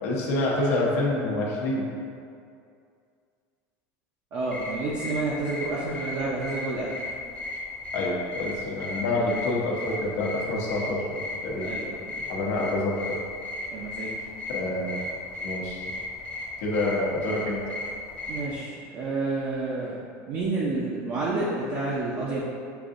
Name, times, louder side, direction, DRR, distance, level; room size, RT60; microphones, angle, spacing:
voice 1, 0.0-1.8 7.9-11.7 12.3-13.2 14.5-15.0 15.4-15.8 16.6-17.6, left 2 dB, 80° left, -3 dB, 1.0 m, -27 dB
voice 2, 4.3-6.9 9.2-9.3 11.6-12.2 13.7-14.1 18.3-20.0 20.3-22.4, right 3 dB, 45° right, -7 dB, 0.6 m, -29 dB
sound 1, 4.4-18.6, left 2 dB, 15° left, 0.8 m, -36 dB
6.8 x 2.6 x 2.5 m, 2.4 s
supercardioid pair, 130°, 8 cm